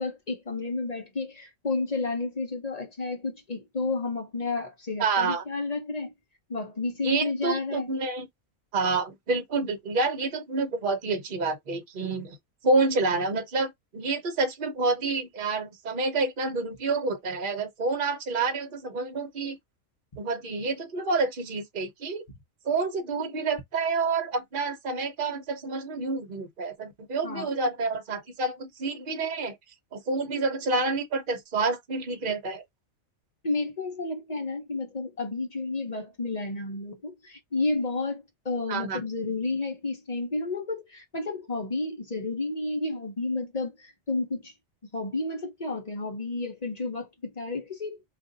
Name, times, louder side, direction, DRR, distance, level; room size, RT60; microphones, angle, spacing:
voice 1, 0.0-6.1 6.5-7.9 27.2-27.5 33.4-44.5 44.9-48.1, left 3 dB, 35° left, 0.8 m, -31 dB
voice 2, 5.0-5.4 7.0-8.3 8.7-12.4 12.6-19.6 20.2-22.2 22.6-29.5 29.9-32.6 38.7-39.0, right 3 dB, 45° right, 1.0 m, -28 dB
2.5 x 2.5 x 3.8 m
omnidirectional pair, 1.4 m